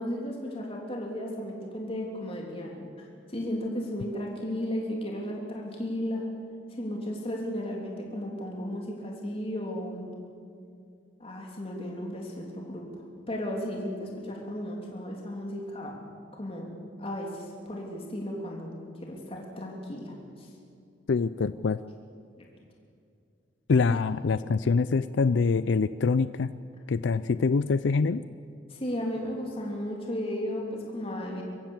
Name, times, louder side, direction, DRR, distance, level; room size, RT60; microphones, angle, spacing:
voice 1, 0.0-6.2 6.7-10.1 11.2-12.9 13.3-15.9 16.3-16.7 17.0-18.7 19.0-20.5 23.9-24.0 28.7-31.4, equal, 30° left, -1 dB, 3.1 m, -34 dB
voice 2, 21.1-21.8 23.7-26.5 26.9-28.2, left 4 dB, 70° left, 15 dB, 0.4 m, -25 dB
25.0 x 15.0 x 7.2 m, 2.4 s
head